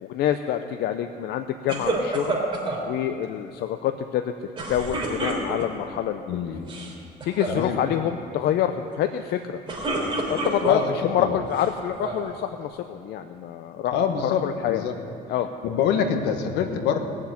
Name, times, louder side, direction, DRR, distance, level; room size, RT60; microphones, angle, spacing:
voice 1, 0.0-2.4 2.8-6.2 7.2-9.6 10.3-13.9 14.2-14.8 15.3-15.5, left 10 dB, 75° left, 8 dB, 0.7 m, -27 dB
sound 1, 1.7-2.8 4.6-5.9 6.6-6.9 7.2-7.6 9.4-11.0 11.5-12.3, right 2 dB, 30° right, 3.4 m, -28 dB
voice 2, 6.3-6.7 7.5-7.8 10.7-10.9 11.2-11.4 13.9-15.0 15.6-17.0, left 7 dB, 90° left, 6 dB, 1.5 m, -25 dB
19.5 x 7.3 x 9.5 m, 2.5 s
cardioid pair, 110°, 17 cm